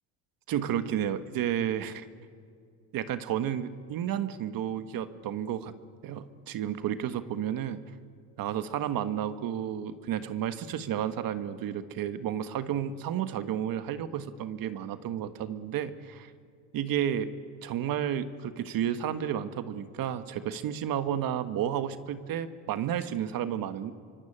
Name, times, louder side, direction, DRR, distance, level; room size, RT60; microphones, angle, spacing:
voice 1, 0.5-2.1 2.9-5.7 6.0-7.8 8.4-16.3 16.7-17.3 17.6-23.9, right 10 dB, 60° right, 10 dB, 1.5 m, -31 dB
27.0 x 24.5 x 8.9 m, 2.3 s
cardioid pair, 110°, 39 cm